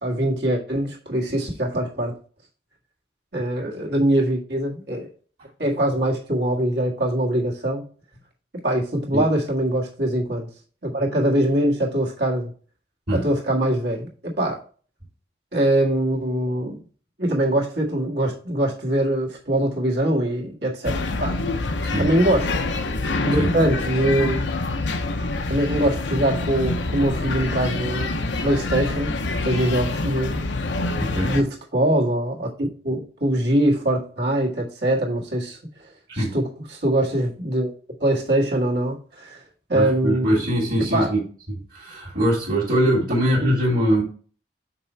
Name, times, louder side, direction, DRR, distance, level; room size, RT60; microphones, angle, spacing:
voice 1, 0.0-2.1 3.3-5.1 5.6-7.8 8.6-10.5 10.8-12.5 13.1-14.6 15.5-16.8 17.2-21.4 22.0-22.5 23.2-24.5 25.5-28.2 28.4-29.1 29.4-30.4 31.3-35.6 36.1-36.5 36.7-37.7 38.0-39.4 39.7-40.3 40.9-41.1 43.4-43.5, right 1 dB, 65° right, 1.8 m, -23 dB
sound 1, 20.8-31.4, left 2 dB, 75° left, 0.8 m, -26 dB
voice 2, 31.0-31.4 36.1-36.4 39.7-41.2 41.5-44.0, equal, 45° right, 2.0 m, -22 dB
6.0 x 4.3 x 4.5 m
head